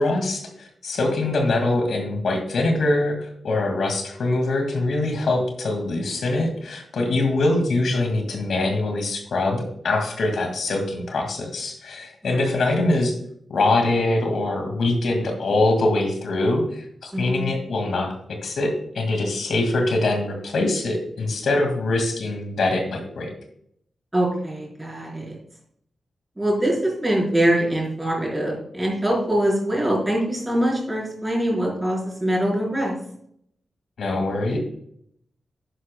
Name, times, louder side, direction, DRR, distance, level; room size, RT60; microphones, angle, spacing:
voice 1, 0.0-13.2 13.5-18.1 18.4-23.3 34.0-34.6, left 2 dB, 70° left, 3 dB, 2.0 m, -23 dB
voice 2, 17.1-17.5 24.1-25.4 26.4-33.0, right 1 dB, 10° right, -2 dB, 4.2 m, -23 dB
11.5 x 10.5 x 2.2 m, 0.69 s
wide cardioid pair, 140°, 0 cm